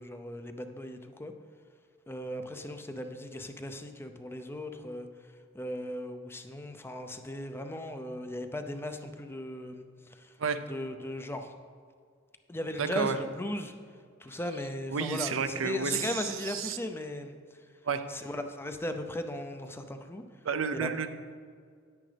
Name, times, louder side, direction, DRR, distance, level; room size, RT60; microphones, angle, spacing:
voice 1, 0.0-1.3 2.1-5.1 5.5-10.3 10.7-11.5 12.5-13.7 14.2-17.4 18.1-20.2 20.8-21.1, left 1 dB, 10° left, 7 dB, 0.5 m, -37 dB
voice 2, 12.8-13.2 14.9-16.8 17.8-18.0 20.4-21.1, right 5 dB, 85° right, 9 dB, 0.6 m, -31 dB
9.9 x 9.7 x 3.4 m, 2.1 s
head